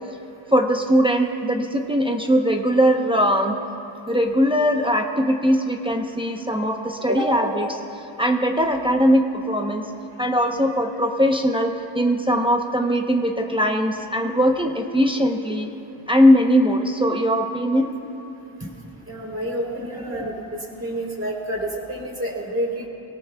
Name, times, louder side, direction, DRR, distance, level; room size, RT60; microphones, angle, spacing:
voice 1, 0.5-3.6 4.1-7.8 8.2-9.9 10.2-15.7 16.1-17.9, equal, 10° right, 2 dB, 0.9 m, -20 dB
voice 2, 19.1-20.4 20.8-22.9, right 1 dB, 30° right, -1 dB, 3.6 m, -28 dB
23.5 x 17.5 x 2.4 m, 2.8 s
wide cardioid pair, 60°, 48 cm